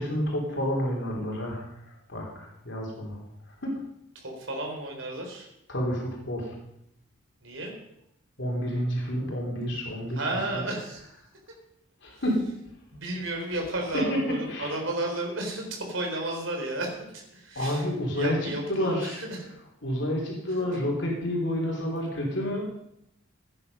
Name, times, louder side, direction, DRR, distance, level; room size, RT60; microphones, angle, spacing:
voice 1, 0.0-1.7 2.1-3.2 3.6-3.7 5.7-6.5 8.4-10.2 10.5-10.6 12.0-12.5 13.9-14.2 14.5-14.8 17.6-19.2 19.8-22.6, equal, 60° left, -1 dB, 3.5 m, -29 dB
voice 2, 4.2-5.5 7.4-7.7 10.1-11.1 12.9-19.5 20.7-20.8, right 1 dB, 70° right, 1 dB, 4.1 m, -33 dB
16.0 x 9.8 x 5.5 m, 0.80 s
head